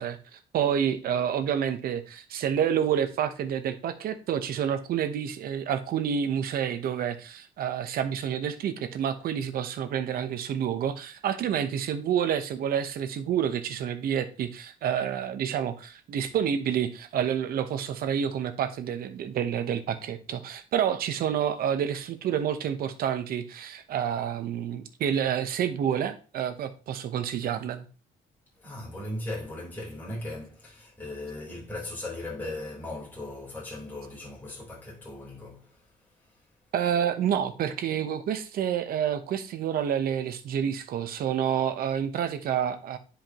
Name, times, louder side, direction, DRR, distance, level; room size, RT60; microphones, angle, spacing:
voice 1, 0.0-27.9 36.7-43.0, right 9 dB, 60° right, 1.0 m, -28 dB
voice 2, 28.6-35.9, left 2 dB, 10° left, 4.0 m, -38 dB
10.0 x 5.1 x 3.0 m
cardioid pair, 110°, 17 cm